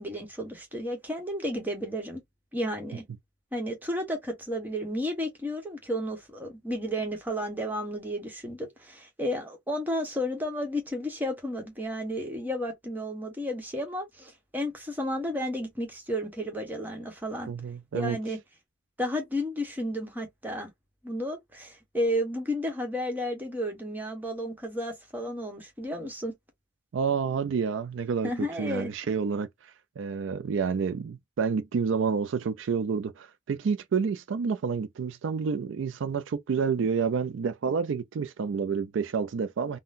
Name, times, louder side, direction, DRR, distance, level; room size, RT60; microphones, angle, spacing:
voice 1, 0.0-2.2 2.5-3.0 3.5-17.5 17.9-18.4 19.0-20.7 21.0-26.3 28.2-28.9, equal, 10° right, 1.1 m, -32 dB
voice 2, 17.5-18.2 26.9-28.3 28.6-39.8, right 5 dB, 70° right, 0.4 m, -29 dB
3.7 x 2.1 x 2.5 m
head